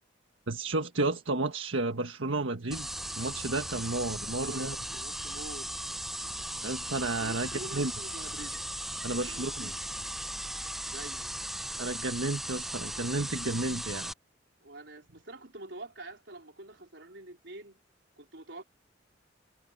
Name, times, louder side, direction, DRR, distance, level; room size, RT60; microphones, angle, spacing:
voice 1, 0.5-2.9 3.1-4.8 6.6-7.9 9.0-9.7 11.8-14.1, right 2 dB, 90° right, 1.6 m, -32 dB
sound 1, 2.7-14.1, right 1 dB, ahead, 0.6 m, -37 dB
voice 2, 4.3-5.7 7.2-8.6 9.1-9.8 10.9-11.3 14.6-17.8 18.2-18.6, right 2 dB, 65° right, 4.3 m, -46 dB
head